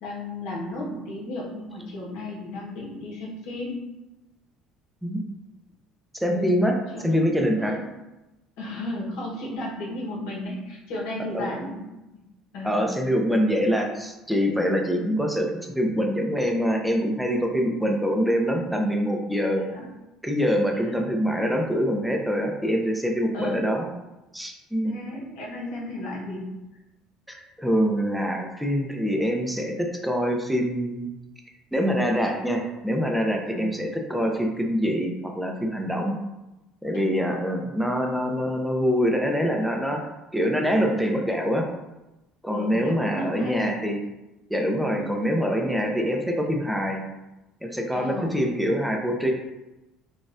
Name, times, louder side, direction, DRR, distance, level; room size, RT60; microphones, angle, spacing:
voice 1, 0.0-3.9 6.3-6.6 6.9-7.3 7.6-7.9 8.6-11.8 12.5-12.9 19.6-19.9 20.7-20.9 23.3-23.6 24.8-26.6 33.5-33.8 42.5-43.7 45.0-45.2 47.9-48.4, left 1 dB, 85° left, -5 dB, 1.2 m, -34 dB
voice 2, 6.2-6.7 7.0-7.8 11.3-11.5 12.6-19.6 20.2-23.9 24.3-25.0 27.3-31.1 31.7-36.2 36.8-40.0 40.3-41.6 42.4-44.0 44.5-47.0 47.6-49.3, equal, ahead, 2 dB, 0.5 m, -25 dB
3.9 x 2.4 x 2.6 m, 0.99 s
cardioid pair, 110°, 0 cm